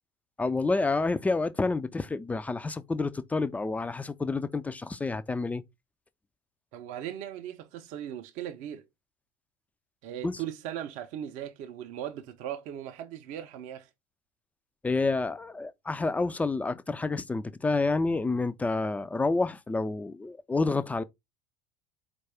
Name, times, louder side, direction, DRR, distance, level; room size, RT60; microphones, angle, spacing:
voice 1, 0.4-5.6 10.2-10.4 14.8-21.0, left 3 dB, 10° left, 0.3 m, -29 dB
voice 2, 6.7-8.9 10.0-13.9, right 10 dB, 45° right, 0.5 m, -38 dB
4.5 x 2.3 x 4.3 m
figure-of-eight pair, 70°, 18 cm